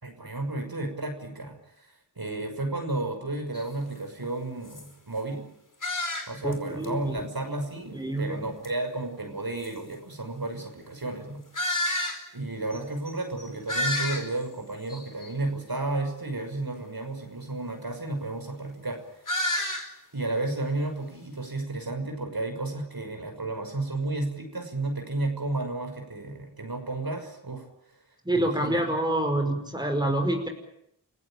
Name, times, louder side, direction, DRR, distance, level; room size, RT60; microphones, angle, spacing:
voice 1, 0.0-5.4 6.3-11.4 12.3-19.5 20.1-27.7 28.3-28.8, right 2 dB, 55° right, 5 dB, 6.1 m, -32 dB
sound 1, 3.5-3.7 4.2-4.3 4.6-4.9 5.8-6.5 6.8-6.9 8.6-8.7 9.6-9.7 11.5-12.2 12.7-12.8 13.1-13.2 13.4-14.5 14.9-15.3 19.3-19.9, left 1 dB, 45° left, 5.0 m, -29 dB
voice 2, 6.4-7.1 7.9-8.4 28.2-30.5, right 1 dB, 10° right, 4 dB, 5.4 m, -27 dB
29.0 x 16.0 x 8.9 m, 0.76 s
wide cardioid pair, 45°, 43 cm